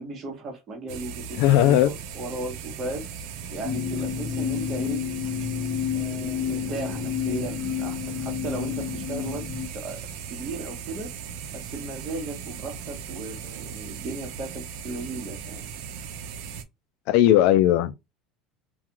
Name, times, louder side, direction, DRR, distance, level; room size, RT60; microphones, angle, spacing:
voice 1, 0.0-3.0 3.5-5.0 5.9-9.4 9.7-10.0 10.3-11.1 11.5-15.6, right 2 dB, 30° right, 1.0 m, -36 dB
sound 1, 0.9-16.6, right 7 dB, 75° right, 0.4 m, -38 dB
voice 2, 1.4-1.9 17.1-17.9, left 12 dB, 65° left, 0.4 m, -18 dB
sound 2, 3.6-9.7, left 8 dB, 20° left, 0.8 m, -30 dB
2.4 x 2.3 x 2.9 m
cardioid pair, 150°, 0 cm